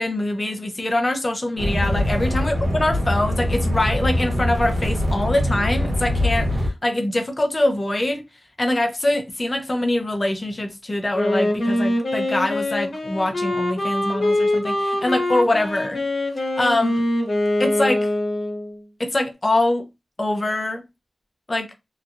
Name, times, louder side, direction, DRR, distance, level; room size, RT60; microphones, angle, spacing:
voice 1, 0.0-8.2 8.6-16.0 16.4-17.0 17.6-18.1 19.0-19.9 20.2-20.8 21.5-21.7, left 1 dB, 35° left, 0.6 m, -23 dB
sound 1, 1.6-6.7, left 1 dB, 85° right, 1.0 m, -23 dB
Wind instrument woodwind instrument, 11.1-18.8, left 1 dB, 50° left, 1.2 m, -23 dB
2.9 x 2.3 x 2.5 m
wide cardioid pair, 95°, 0 cm